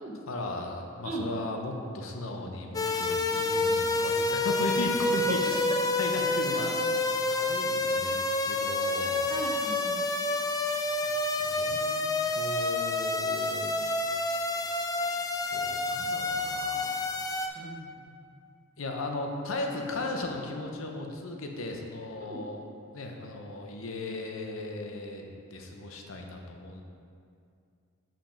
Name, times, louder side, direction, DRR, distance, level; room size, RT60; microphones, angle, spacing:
voice 1, 0.3-5.6 6.0-6.8 7.3-9.4 10.8-12.0 12.3-13.7 15.5-17.7 18.8-22.7 22.9-26.8, left 2 dB, 75° left, 2 dB, 0.8 m, -36 dB
sound 1, 2.7-17.5, left 2 dB, 15° left, 0.3 m, -28 dB
voice 2, 9.3-10.0 17.5-18.2 22.2-22.4, right 2 dB, 35° right, 0 dB, 0.8 m, -38 dB
5.9 x 5.2 x 5.0 m, 2.4 s
head